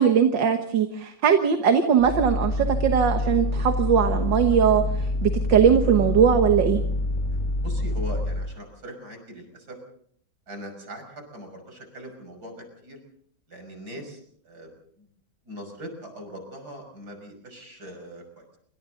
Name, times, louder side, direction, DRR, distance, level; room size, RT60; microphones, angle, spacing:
voice 1, 0.0-4.8 5.2-6.8, right 7 dB, 75° right, 6 dB, 2.0 m, -20 dB
sound 1, 2.0-8.5, left 2 dB, 15° left, 4.8 m, -26 dB
voice 2, 7.3-9.8 10.5-13.0 13.5-15.1 15.4-18.6, equal, 55° right, 4 dB, 6.4 m, -41 dB
27.5 x 25.5 x 3.9 m, 0.64 s
omnidirectional pair, 2.0 m